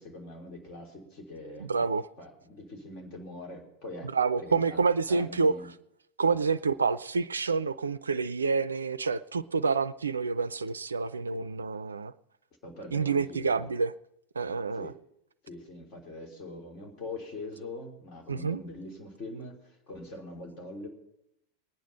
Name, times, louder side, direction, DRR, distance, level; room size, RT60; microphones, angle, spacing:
voice 1, 0.0-1.8 2.2-4.1 4.4-4.8 5.1-5.7 11.3-11.4 12.6-13.7 14.7-14.9 15.4-20.9, left 2 dB, 40° left, 3.3 m, -43 dB
voice 2, 1.6-2.1 4.0-5.5 6.2-12.1 12.9-13.9 14.4-14.9 18.3-18.6, right 4 dB, 75° right, 0.5 m, -28 dB
21.0 x 9.3 x 5.7 m
figure-of-eight pair, 90°, 0 cm